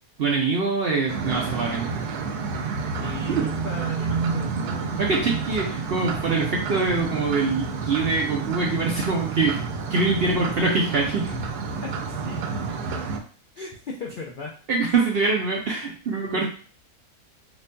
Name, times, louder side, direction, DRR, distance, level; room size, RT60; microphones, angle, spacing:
voice 1, 0.2-2.0 3.3-3.4 5.0-11.3 14.7-16.5, right 3 dB, 65° right, -1 dB, 0.6 m, -24 dB
sound 1, 1.1-13.2, right 5 dB, 90° right, 1.2 m, -29 dB
voice 2, 3.0-4.9 6.1-6.3 10.3-10.4 11.3-11.4 11.8-12.4 13.6-14.5, left 3 dB, 80° left, -1 dB, 0.4 m, -37 dB
5.0 x 2.6 x 2.2 m, 0.42 s
omnidirectional pair, 1.6 m